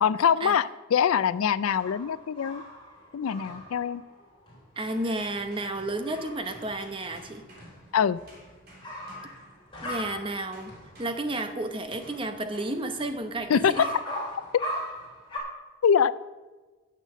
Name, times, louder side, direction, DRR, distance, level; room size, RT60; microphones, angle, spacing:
voice 1, 0.0-2.6 3.1-4.0 7.9-8.2 13.5-13.7 15.8-16.1, left 7 dB, 90° left, 17 dB, 0.4 m, -23 dB
sound 1, 1.0-11.2 11.5-15.4, equal, 20° left, 3.5 m, -40 dB
sound 2, 4.7-10.0 10.5-13.0 13.7-14.0, right 1 dB, 50° right, 3.2 m, -53 dB
voice 2, 4.8-7.4 9.8-13.9, right 2 dB, 25° right, 7 dB, 0.8 m, -32 dB
10.0 x 6.7 x 7.5 m, 1.3 s
head